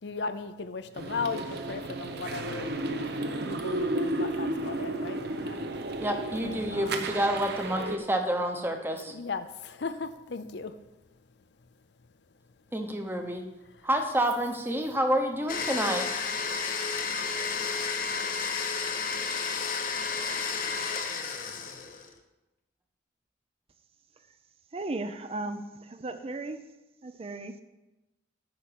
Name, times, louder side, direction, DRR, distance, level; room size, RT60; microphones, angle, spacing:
voice 1, 0.0-5.7 6.7-7.2 9.1-10.8 13.7-13.9, left 4 dB, 65° left, 10 dB, 0.6 m, -37 dB
sound 1, 1.0-8.0, right 2 dB, 60° right, 0.9 m, -33 dB
voice 2, 6.0-9.1 12.7-13.4 13.8-16.1 25.6-25.7, right 1 dB, 10° right, 4 dB, 1.0 m, -28 dB
Domestic sounds home sounds, 15.5-22.1, left 5 dB, 50° left, 0.9 m, -32 dB
voice 3, 24.7-26.6 27.0-27.5, right 2 dB, 30° right, 9 dB, 0.5 m, -36 dB
8.7 x 5.9 x 6.8 m, 1.0 s
head